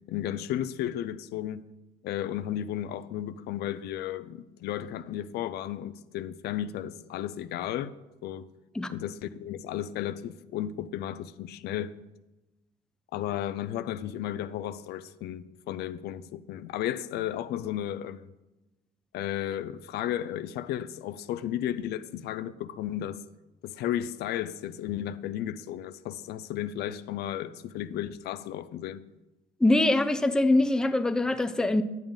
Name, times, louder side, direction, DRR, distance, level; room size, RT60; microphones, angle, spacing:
voice 1, 0.1-1.6 2.0-7.9 8.2-8.5 8.9-11.9 13.1-18.3 19.1-23.2 23.6-29.0, left 11 dB, 75° left, 0.4 m, -34 dB
voice 2, 29.6-31.8, left 2 dB, 5° left, 0.5 m, -23 dB
10.5 x 7.1 x 3.8 m
cardioid pair, 110°, 17 cm